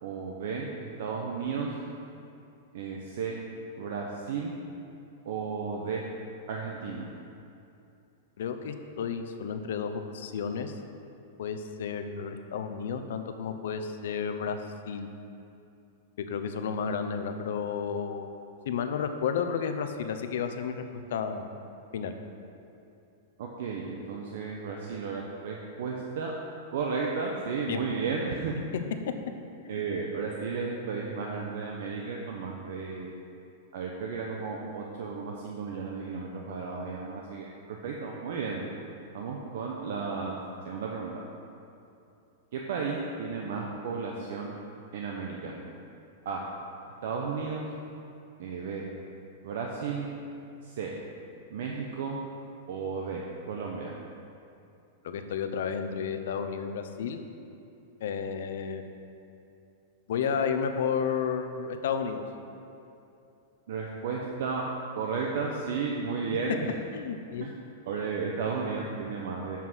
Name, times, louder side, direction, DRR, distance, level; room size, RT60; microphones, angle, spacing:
voice 1, 0.0-1.7 2.7-3.4 3.8-4.6 5.2-6.0 6.5-7.1 23.4-26.3 26.7-28.5 29.7-33.1 33.7-38.6 39.1-40.4 40.6-41.2 42.5-44.6 44.9-45.6 46.2-46.4 47.0-47.7 48.4-48.8 49.4-50.1 50.6-50.9 51.5-52.2 52.7-53.9 63.7-64.7 65.0-66.7 67.4-67.5 67.9-69.6, right 5 dB, 60° right, -1 dB, 0.8 m, -33 dB
voice 2, 8.4-10.7 11.4-14.6 14.9-15.1 16.3-18.3 18.7-20.8 21.1-21.5 21.9-22.1 27.7-27.8 29.6-29.8 55.0-57.2 58.0-58.8 60.1-62.2 66.9-67.5, left 6 dB, 70° left, 7 dB, 0.7 m, -32 dB
7.4 x 5.7 x 6.2 m, 2.7 s
supercardioid pair, 170°, 0 cm